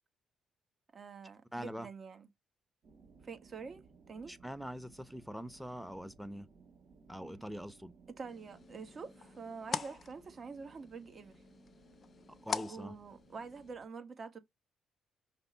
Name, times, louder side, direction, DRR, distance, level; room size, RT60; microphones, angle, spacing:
voice 1, 0.9-2.3 3.2-4.3 7.2-7.5 8.1-11.4 12.6-14.4, right 5 dB, 45° right, 1.5 m, -47 dB
voice 2, 1.5-1.9 4.3-6.5 7.1-7.9 12.4-12.9, equal, ahead, 0.9 m, -43 dB
sound 1, 2.8-13.9, right 5 dB, 60° right, 2.5 m, -62 dB
sound 2, 8.3-13.7, left 6 dB, 45° left, 0.6 m, -44 dB
5.9 x 3.2 x 5.6 m
cardioid pair, 90°, 0 cm